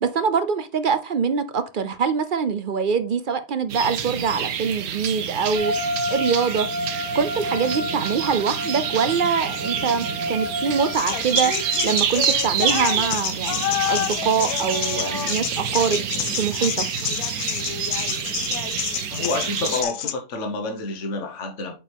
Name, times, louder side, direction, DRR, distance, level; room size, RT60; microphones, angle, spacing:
voice 1, 0.0-6.7 7.1-11.5 11.8-16.1 16.3-16.9, right 6 dB, 55° right, 0.6 m, -24 dB
sound 1, 3.7-19.8, right 8 dB, 85° right, 1.3 m, -28 dB
sound 2, 5.5-11.9, left 1 dB, 35° right, 1.8 m, -30 dB
sound 3, 10.9-20.1, left 10 dB, 90° left, 1.2 m, -28 dB
voice 2, 19.1-21.7, left 3 dB, 55° left, 1.5 m, -28 dB
8.1 x 5.1 x 3.5 m
omnidirectional pair, 1.5 m